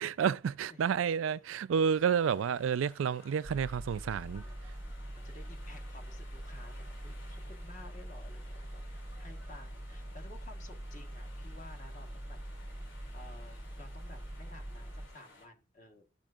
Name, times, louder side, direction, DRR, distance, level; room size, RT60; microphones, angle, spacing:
voice 1, 0.0-4.4, right 7 dB, 85° right, 0.4 m, -30 dB
sound 1, 1.8-15.5, left 2 dB, 70° left, 2.7 m, -58 dB
voice 2, 2.3-2.7 4.4-4.8 5.1-12.4 13.1-16.0, left 2 dB, 40° left, 1.2 m, -54 dB
sound 2, 3.4-15.1, right 1 dB, 10° right, 0.6 m, -44 dB
12.0 x 5.4 x 2.4 m
head